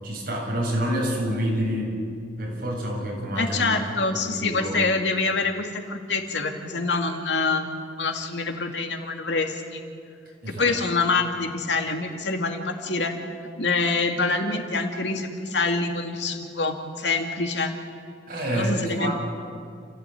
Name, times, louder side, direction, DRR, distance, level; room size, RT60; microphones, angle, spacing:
voice 1, 0.0-2.0 2.4-3.8 4.0-4.7 10.4-10.7 18.3-19.1, equal, 55° right, -2 dB, 7.6 m, -27 dB
voice 2, 3.4-7.7 8.0-9.8 10.6-13.1 13.6-17.7 18.5-19.1, left 3 dB, 85° left, 4 dB, 2.4 m, -26 dB
29.0 x 15.0 x 9.3 m, 2.3 s
head